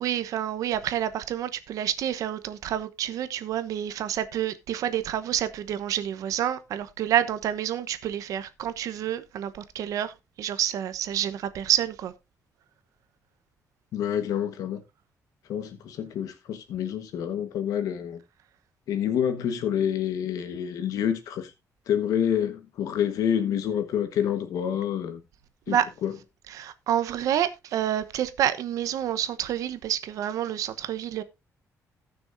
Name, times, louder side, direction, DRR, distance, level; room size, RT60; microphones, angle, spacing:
voice 1, 0.0-12.1 25.7-25.9 26.5-31.2, right 11 dB, 75° right, 1.0 m, -28 dB
voice 2, 13.9-14.8 15.5-18.2 18.9-21.5 21.9-25.2 25.7-26.1, left 9 dB, 85° left, 1.3 m, -28 dB
18.0 x 6.2 x 2.6 m
cardioid pair, 170°, 6 cm